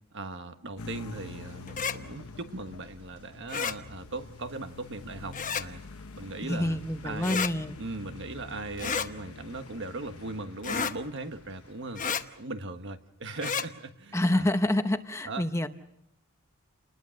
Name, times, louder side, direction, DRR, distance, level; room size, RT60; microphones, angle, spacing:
voice 1, 0.1-5.8 6.1-6.8 7.0-7.4 7.8-14.4 15.2-15.4, right 2 dB, 55° right, 8 dB, 1.4 m, -39 dB
sound 1, 0.8-12.3, left 3 dB, 75° left, 1.0 m, -46 dB
sound 2, 1.2-11.8, right 1 dB, 70° right, 5.7 m, -59 dB
sound 3, 1.7-2.0 3.5-3.8 5.3-5.6 7.2-7.5 8.8-9.1 10.6-10.9 12.0-12.2 13.3-13.7, left 6 dB, 35° left, 1.0 m, -30 dB
voice 2, 6.4-7.8 14.1-15.7, left 1 dB, 15° left, 9 dB, 0.8 m, -27 dB
29.5 x 20.5 x 6.5 m, 0.80 s
head